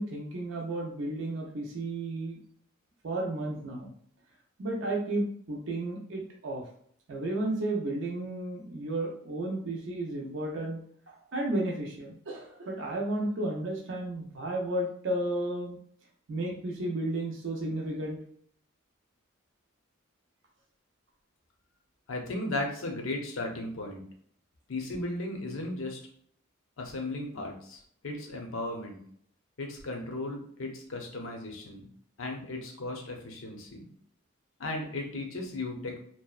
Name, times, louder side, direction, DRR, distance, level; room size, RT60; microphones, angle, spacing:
voice 1, 0.0-2.4 3.0-3.9 4.6-6.6 7.1-10.8 11.3-15.8 16.3-18.2, right 1 dB, 60° right, -1 dB, 0.5 m, -33 dB
voice 2, 22.1-24.0 24.7-26.0 26.8-29.0 29.6-31.9 32.2-33.9 34.6-36.0, left 2 dB, 75° left, 2 dB, 0.6 m, -36 dB
2.7 x 2.1 x 2.3 m, 0.62 s
head